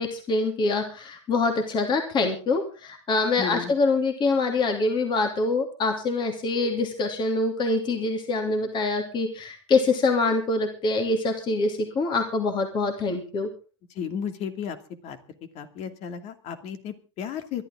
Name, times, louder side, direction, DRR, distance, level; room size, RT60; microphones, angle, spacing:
voice 1, 0.0-13.5, left 3 dB, 30° left, 4 dB, 2.9 m, -25 dB
voice 2, 3.4-3.7 13.9-14.8 15.0-15.2 15.5-17.6, left 7 dB, 45° left, 8 dB, 2.6 m, -33 dB
23.5 x 12.0 x 3.8 m, 0.35 s
hypercardioid pair, 110°, 16 cm